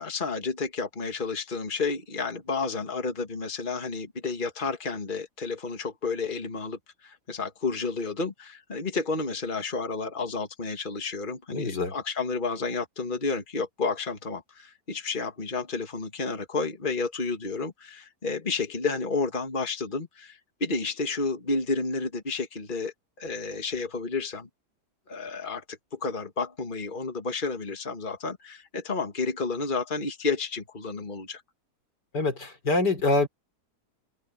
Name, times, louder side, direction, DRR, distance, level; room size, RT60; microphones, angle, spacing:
voice 1, 0.0-24.5 25.1-31.4, left 4 dB, 30° left, 2.1 m, -31 dB
voice 2, 11.5-11.9 32.1-33.3, left 2 dB, 90° left, 4.6 m, -25 dB
open air
omnidirectional pair, 1.7 m